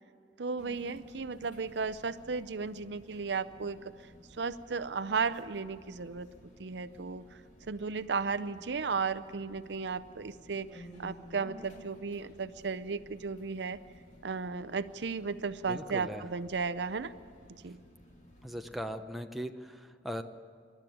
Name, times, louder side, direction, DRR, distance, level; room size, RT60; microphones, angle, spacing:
voice 1, 0.4-3.8 4.3-6.3 6.6-7.2 7.7-13.8 14.2-17.1 17.6-17.8, right 5 dB, 65° right, 14 dB, 0.6 m, -35 dB
sound 1, 0.6-18.8, equal, 40° left, 3.1 m, -55 dB
voice 2, 15.7-16.3 18.4-20.2, equal, ahead, 5 dB, 0.8 m, -39 dB
27.5 x 12.5 x 9.4 m, 2.3 s
head